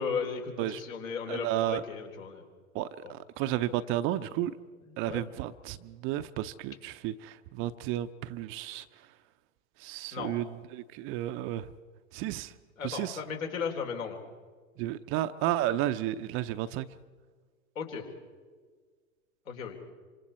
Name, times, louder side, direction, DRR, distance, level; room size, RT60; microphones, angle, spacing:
voice 1, 0.0-2.4 3.0-3.1 4.9-5.3 10.1-10.4 12.8-14.2 17.8-18.1 19.5-19.8, left 6 dB, 70° left, 2 dB, 4.1 m, -35 dB
voice 2, 1.3-1.8 2.7-4.5 5.0-8.8 9.8-11.7 12.1-12.5 12.8-13.2 14.8-16.9, right 13 dB, 30° right, 11 dB, 0.6 m, -32 dB
27.0 x 25.5 x 4.3 m, 1.5 s
hypercardioid pair, 110°, 42 cm